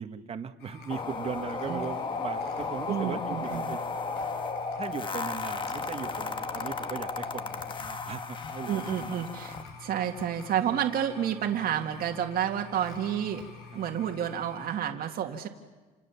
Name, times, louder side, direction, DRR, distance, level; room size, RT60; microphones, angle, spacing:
voice 1, 0.0-3.8 4.8-8.8, right 6 dB, 35° right, 7 dB, 1.5 m, -38 dB
sound 1, 0.6-14.8, left 4 dB, 80° left, 5.2 m, -47 dB
sound 2, 0.9-9.6, left 4 dB, 30° left, 1.4 m, -34 dB
voice 2, 2.9-3.8 8.7-13.4 13.7-15.5, right 9 dB, 60° right, 3 dB, 1.9 m, -30 dB
29.5 x 27.5 x 7.2 m, 1.3 s
cardioid pair, 110°, 17 cm